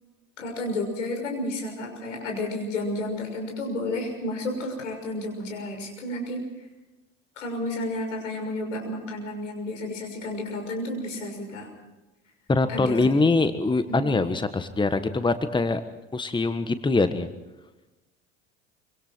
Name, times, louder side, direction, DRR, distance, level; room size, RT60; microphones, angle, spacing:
voice 1, 0.4-6.7 7.4-11.7 12.7-13.0 14.0-14.2, left 1 dB, 80° left, 2 dB, 6.4 m, -31 dB
voice 2, 12.5-15.8 16.1-17.3, left 3 dB, 10° left, 10 dB, 1.4 m, -23 dB
26.0 x 25.0 x 4.5 m, 1.0 s
figure-of-eight pair, 65°, 37 cm